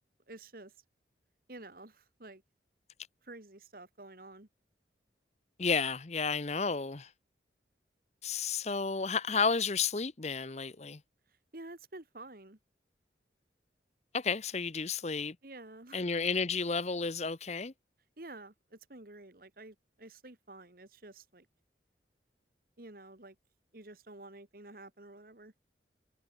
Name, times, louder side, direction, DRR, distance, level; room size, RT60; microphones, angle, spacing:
voice 1, 0.3-0.7 1.5-2.4 3.2-4.5 11.5-12.6 15.4-16.1 18.2-21.5 22.8-23.3 23.7-25.5, right 2 dB, 50° right, 1.8 m, -50 dB
voice 2, 5.6-7.1 8.2-11.0 14.1-15.4 15.9-17.7, left 5 dB, 35° left, 0.8 m, -32 dB
head